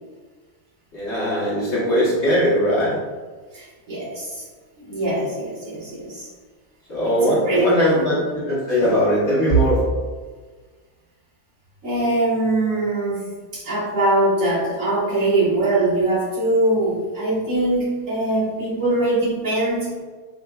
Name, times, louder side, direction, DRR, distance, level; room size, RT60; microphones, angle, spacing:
voice 1, 0.9-3.0 6.9-9.8, equal, 50° left, -8 dB, 1.2 m, -20 dB
voice 2, 3.5-4.4 4.8-6.3 7.0-8.1 11.8-19.9, right 2 dB, 55° right, -10 dB, 1.7 m, -22 dB
4.9 x 2.4 x 2.2 m, 1.4 s
omnidirectional pair, 1.7 m